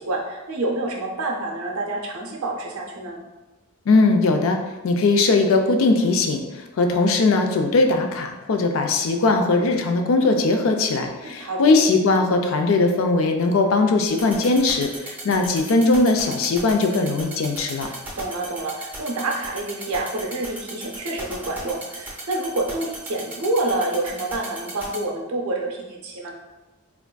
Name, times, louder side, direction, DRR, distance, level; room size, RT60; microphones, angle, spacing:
voice 1, 0.0-3.2 11.2-11.9 17.8-26.3, right 2 dB, 80° right, 0 dB, 0.6 m, -28 dB
voice 2, 3.9-4.6 4.8-17.9, left 3 dB, 65° left, 5 dB, 0.3 m, -20 dB
sound 1, 14.1-25.0, right 2 dB, 10° right, 0.6 m, -35 dB
3.4 x 2.4 x 2.2 m, 1.1 s
head